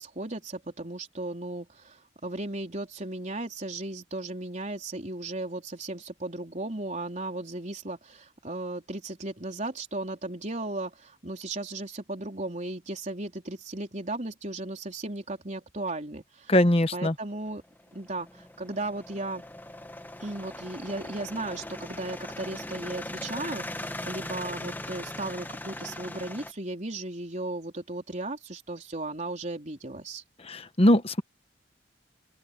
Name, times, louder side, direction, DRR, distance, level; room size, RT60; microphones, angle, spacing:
voice 1, 0.0-16.5 16.9-17.6 17.9-19.4 20.2-30.2, right 2 dB, 40° right, 4.0 m, -36 dB
voice 2, 16.5-17.1 30.4-31.2, left 1 dB, 30° left, 1.2 m, -21 dB
sound 1, 17.5-26.5, left 1 dB, 10° left, 1.4 m, -40 dB
open air
head